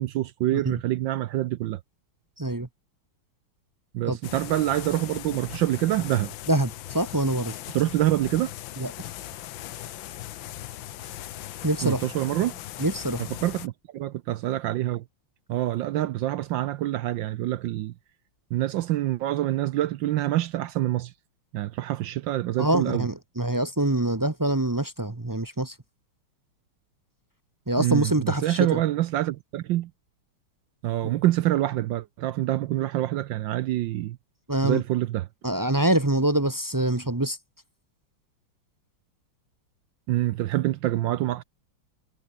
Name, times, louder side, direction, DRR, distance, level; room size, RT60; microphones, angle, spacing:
voice 1, 0.0-1.8 3.9-6.3 7.7-8.5 11.8-12.6 13.2-15.0 15.5-17.9 18.5-21.1 21.5-23.1 27.8-29.9 30.8-34.2 34.6-35.3 40.1-41.4, right 14 dB, 70° right, 1.2 m, -26 dB
voice 2, 2.4-2.7 4.1-4.2 6.5-7.6 8.8-8.9 11.6-12.1 12.8-13.2 22.6-25.7 27.7-28.8 31.0-31.1 34.5-34.8 35.4-37.4, right 1 dB, 25° right, 0.4 m, -25 dB
sound 1, 4.2-13.7, left 13 dB, 70° left, 1.5 m, -39 dB
omnidirectional pair, 2.4 m